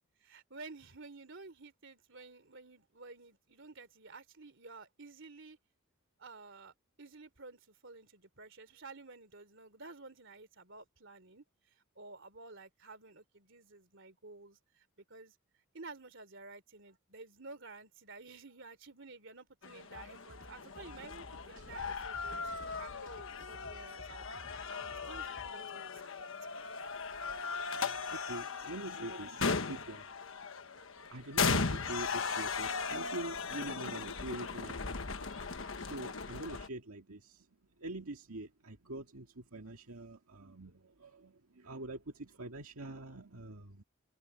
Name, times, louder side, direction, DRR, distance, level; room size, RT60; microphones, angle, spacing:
voice 1, 0.2-5.6 6.2-15.3 15.7-24.2 24.7-26.7, right 3 dB, 55° right, 3.3 m, -52 dB
sound 1, 19.6-36.7, left 5 dB, 60° left, 1.3 m, -38 dB
sound 2, 19.9-25.5, equal, 40° right, 5.0 m, -55 dB
voice 2, 28.0-30.1 31.1-35.1 35.6-37.5 37.8-43.8, right 2 dB, 75° right, 2.1 m, -45 dB
open air
head